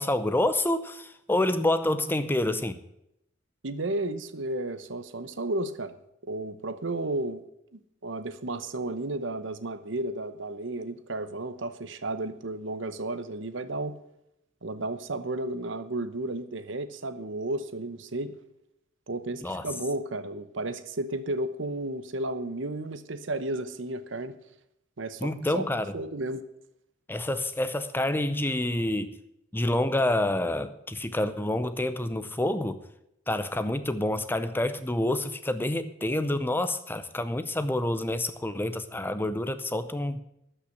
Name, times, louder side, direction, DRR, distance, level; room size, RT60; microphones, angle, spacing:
voice 1, 0.0-2.8 19.4-19.6 25.2-25.9 27.1-29.1 29.5-32.8 33.3-40.2, left 1 dB, 10° left, 11 dB, 0.6 m, -28 dB
voice 2, 3.6-5.9 6.2-7.4 7.7-14.0 14.6-18.4 19.1-24.3 25.0-25.7 25.9-26.4, right 2 dB, 65° right, 12 dB, 0.9 m, -33 dB
12.5 x 5.7 x 8.4 m, 0.81 s
head